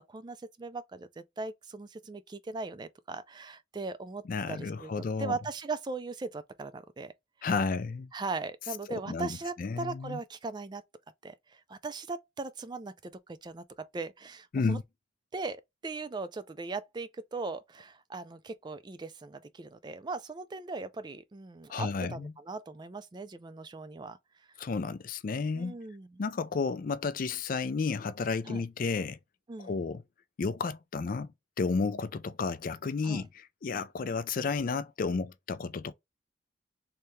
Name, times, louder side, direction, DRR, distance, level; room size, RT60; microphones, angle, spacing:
voice 1, 0.1-7.1 8.1-10.8 11.2-14.8 15.3-24.5 25.5-26.2 28.5-28.6 29.5-29.7 33.0-33.2, right 3 dB, 25° right, 0.3 m, -39 dB
voice 2, 4.3-5.4 7.4-8.1 8.9-9.3 9.6-10.2 14.5-14.8 21.7-22.3 24.6-25.7 26.2-29.2 29.6-30.0 30.4-31.3 31.6-35.9, left 4 dB, 45° left, 0.4 m, -32 dB
3.3 x 2.8 x 3.0 m
head